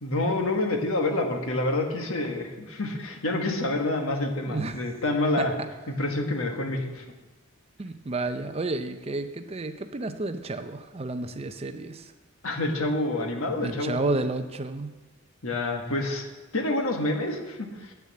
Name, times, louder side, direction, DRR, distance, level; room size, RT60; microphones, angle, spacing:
voice 1, 0.0-5.5 5.9-7.0 12.4-14.1 15.4-16.2 16.5-17.9, left 2 dB, 65° left, 3 dB, 1.5 m, -27 dB
voice 2, 4.5-4.8 5.4-5.7 7.8-12.1 13.6-14.9, right 2 dB, 25° right, 9 dB, 0.5 m, -31 dB
8.6 x 7.0 x 7.5 m, 1.2 s
head